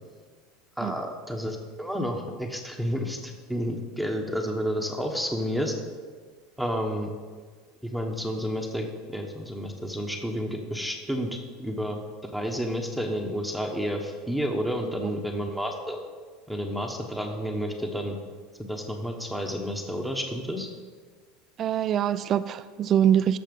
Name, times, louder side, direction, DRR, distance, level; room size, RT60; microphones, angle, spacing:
voice 1, 0.8-5.7 6.6-7.1 7.9-12.0 12.3-16.0 16.5-18.1 18.7-20.7, equal, ahead, 2 dB, 1.2 m, -30 dB
voice 2, 21.6-23.4, right 9 dB, 35° right, 13 dB, 0.3 m, -24 dB
14.0 x 6.5 x 5.3 m, 1.5 s
supercardioid pair, 135°, 0 cm